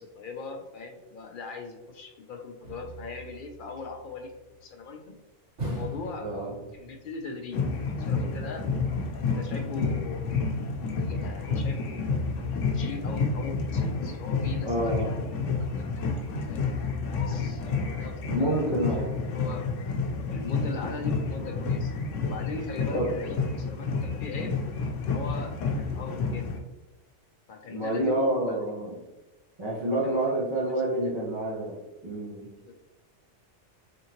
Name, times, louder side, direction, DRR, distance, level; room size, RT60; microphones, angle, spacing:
voice 1, 0.0-4.3 4.6-5.2 5.6-6.3 6.7-8.7 9.2-10.3 11.0-12.1 12.7-14.9 15.3-16.7 17.1-18.8 19.2-19.6 20.3-21.9 22.2-24.6 25.0-26.5 27.5-28.6 30.0-30.7 32.6-32.7, left 4 dB, 60° left, 3 dB, 0.6 m, -40 dB
sound 1, 2.6-4.3 5.6-7.1 7.4-7.5, right 1 dB, 80° right, 1.7 m, -39 dB
voice 2, 6.2-6.5 9.7-9.8 14.6-15.2 18.3-19.2 22.9-23.1 27.7-28.9 29.6-31.8 32.0-32.5, right 1 dB, 25° right, -7 dB, 0.8 m, -28 dB
sound 2, 7.5-26.6, left 4 dB, 85° left, 0.9 m, -30 dB
3.7 x 3.6 x 2.9 m, 1.1 s
omnidirectional pair, 1.3 m